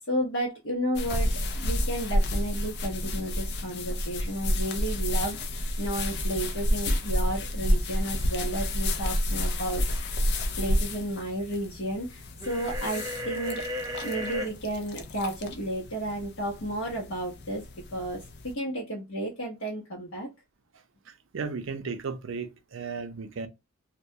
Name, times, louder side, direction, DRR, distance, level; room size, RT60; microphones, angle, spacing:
voice 1, 0.1-10.2 10.6-13.7 14.0-17.6 17.9-20.3, right 1 dB, 70° left, 0.9 m, -32 dB
sound 1, 1.0-18.5, left 1 dB, 50° left, 0.4 m, -30 dB
sound 2, 12.4-14.5, left 1 dB, 20° right, 0.5 m, -34 dB
voice 2, 21.1-23.5, right 5 dB, 65° right, 0.5 m, -35 dB
2.3 x 2.2 x 2.7 m
head